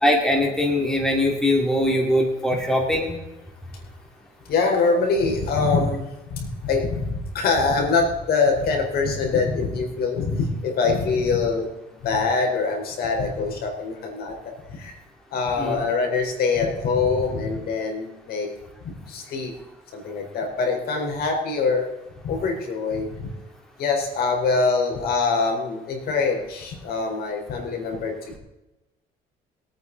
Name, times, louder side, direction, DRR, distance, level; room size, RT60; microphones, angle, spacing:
voice 1, 0.0-3.2 15.6-15.8, left 1 dB, 5° left, 1 dB, 2.7 m, -21 dB
voice 2, 4.4-15.0 15.3-18.5 18.8-19.5 19.9-21.9 22.2-23.3 23.8-28.4, left 4 dB, 65° left, 1 dB, 4.4 m, -24 dB
22.5 x 9.2 x 4.1 m, 0.99 s
cardioid pair, 110°, 17 cm